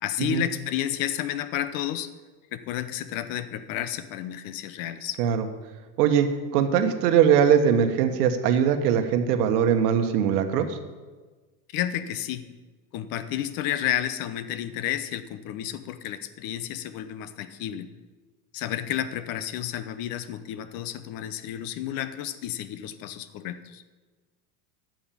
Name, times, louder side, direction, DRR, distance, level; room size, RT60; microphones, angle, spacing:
voice 1, 0.0-2.1 2.5-5.2 11.7-12.4 12.9-17.9 18.5-23.8, left 11 dB, 45° left, 12 dB, 0.8 m, -31 dB
voice 2, 6.5-10.8, right 8 dB, 70° right, 8 dB, 1.3 m, -21 dB
9.0 x 6.3 x 8.6 m, 1.3 s
supercardioid pair, 130°, 48 cm